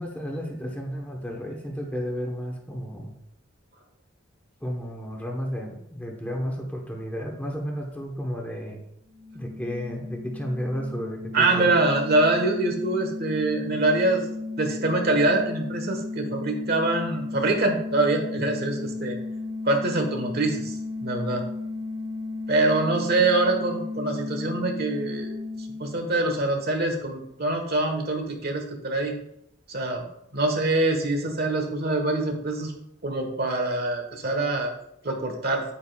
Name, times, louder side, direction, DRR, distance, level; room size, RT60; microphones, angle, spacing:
voice 1, 0.0-3.1 4.6-8.8 9.3-11.7, equal, 10° left, 0 dB, 1.1 m, -32 dB
sound 1, 9.0-26.5, left 3 dB, 35° right, 2.6 m, -34 dB
voice 2, 11.3-14.3 14.6-19.2 19.6-20.8 21.0-21.4 22.5-25.3 25.8-29.1 29.7-30.0 30.3-32.7 33.0-34.7 35.0-35.6, right 2 dB, 50° right, 4 dB, 1.4 m, -24 dB
9.2 x 8.5 x 2.4 m, 0.78 s
head